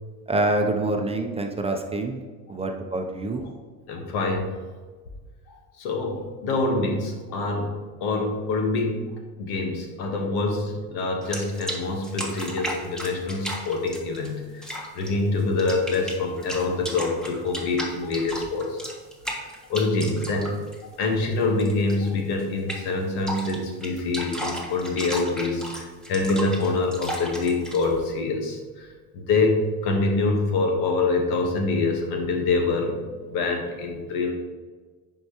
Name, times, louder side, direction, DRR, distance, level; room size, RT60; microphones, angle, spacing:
voice 1, 0.3-2.2 2.5-3.5, right 2 dB, 15° right, 3 dB, 0.6 m, -26 dB
voice 2, 3.9-4.5 5.8-9.0 9.4-14.6 14.9-18.8 19.7-20.5 21.0-28.9 29.1-33.0 33.3-34.3, left 3 dB, 80° left, 3 dB, 1.5 m, -25 dB
sound 1, 11.2-11.8 12.0-14.3 14.6-15.1 15.4-21.3 21.6-22.1 22.4-22.5 22.7-22.9 23.3-27.9, equal, ahead, 1.3 m, -34 dB
9.8 x 4.7 x 3.0 m, 1.4 s
supercardioid pair, 110°, 38 cm